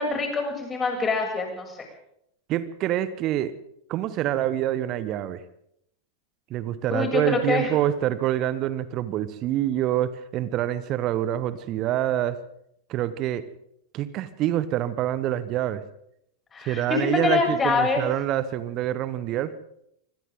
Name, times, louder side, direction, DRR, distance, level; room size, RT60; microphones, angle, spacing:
voice 1, 0.0-1.8 6.9-7.7 16.5-18.0, left 4 dB, 20° left, 2 dB, 7.8 m, -25 dB
voice 2, 2.5-3.5 3.9-5.4 6.5-12.4 12.9-13.4 13.9-15.8 16.6-19.5, right 12 dB, 35° right, 14 dB, 1.4 m, -26 dB
26.5 x 25.0 x 3.9 m, 0.74 s
figure-of-eight pair, 90°, 0 cm